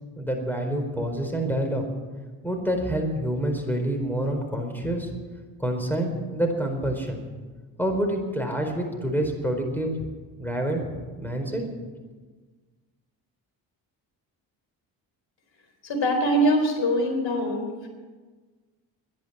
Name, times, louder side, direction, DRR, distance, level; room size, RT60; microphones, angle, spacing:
voice 1, 0.1-1.8 2.4-5.1 5.6-7.2 7.8-10.0 10.4-11.6, right 1 dB, 5° left, 4 dB, 4.5 m, -27 dB
voice 2, 15.8-17.9, equal, 60° left, 4 dB, 4.2 m, -23 dB
13.0 x 10.5 x 8.9 m, 1.4 s
supercardioid pair, 55°, 49 cm